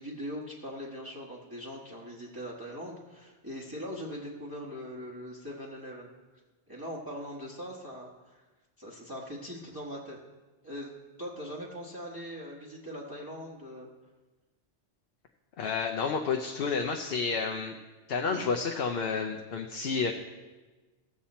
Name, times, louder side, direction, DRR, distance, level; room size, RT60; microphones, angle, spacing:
voice 1, 0.0-6.1 6.7-8.4 8.8-10.2 10.6-10.9 11.2-13.9 18.3-18.5, equal, 20° right, -5 dB, 1.4 m, -41 dB
voice 2, 15.6-17.8 18.1-20.1, left 5 dB, 60° left, 3 dB, 0.9 m, -30 dB
15.5 x 7.4 x 4.3 m, 1.2 s
omnidirectional pair, 1.2 m